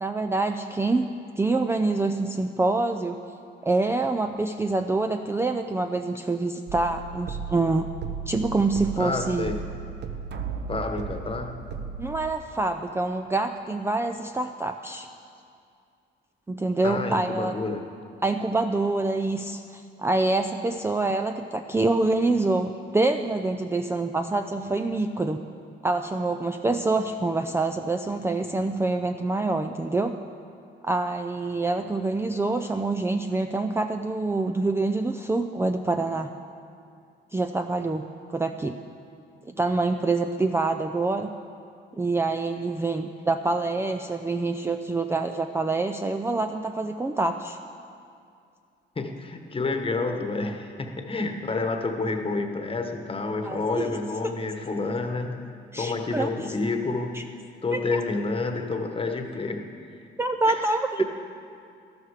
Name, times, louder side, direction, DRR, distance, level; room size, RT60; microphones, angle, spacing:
voice 1, 0.0-3.2 3.6-7.9 8.3-9.5 12.0-15.1 16.5-17.5 18.2-25.4 25.8-30.2 30.8-36.3 37.3-38.8 39.5-41.3 42.0-47.6 53.4-53.9 55.7-56.3 57.1-57.2 57.7-58.0 60.2-61.0, right 3 dB, 10° right, 6 dB, 0.4 m, -26 dB
sound 1, 6.7-12.3, right 5 dB, 60° right, 0.9 m, -35 dB
voice 2, 9.0-9.7 10.7-11.6 16.8-17.8 49.0-55.4 55.8-57.2 57.6-60.0 60.5-60.6 61.0-61.1, left 3 dB, 25° left, 5 dB, 1.2 m, -29 dB
13.0 x 12.5 x 4.9 m, 2.4 s
cardioid pair, 90°, 20 cm